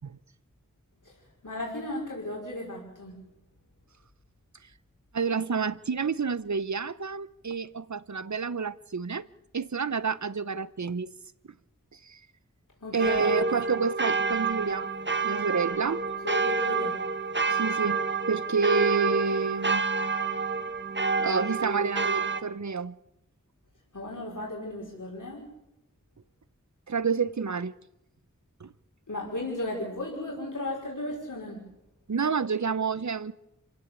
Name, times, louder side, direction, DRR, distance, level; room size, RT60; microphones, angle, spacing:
voice 1, 1.4-3.2 12.8-13.5 15.5-15.7 16.2-17.0 23.9-25.5 29.1-31.7, left 1 dB, 70° left, 5.3 m, -35 dB
voice 2, 5.1-9.2 9.5-11.1 12.1-12.2 12.9-14.9 15.2-16.0 17.5-18.0 18.3-19.8 21.2-22.9 26.9-27.7 28.6-28.7 32.1-33.3, right 5 dB, 60° right, 0.9 m, -29 dB
sound 1, 13.0-22.4, right 4 dB, 35° right, 1.3 m, -28 dB
27.0 x 16.0 x 8.4 m
wide cardioid pair, 45°, 32 cm